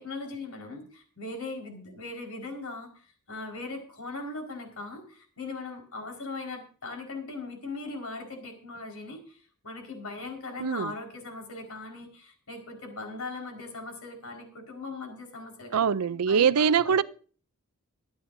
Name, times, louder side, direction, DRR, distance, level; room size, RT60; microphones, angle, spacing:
voice 1, 0.0-9.4 9.6-15.8 16.3-17.0, left 3 dB, 75° left, 4.8 m, -39 dB
voice 2, 10.6-10.9 15.7-17.0, right 7 dB, 85° right, 0.5 m, -23 dB
24.0 x 9.4 x 2.7 m
head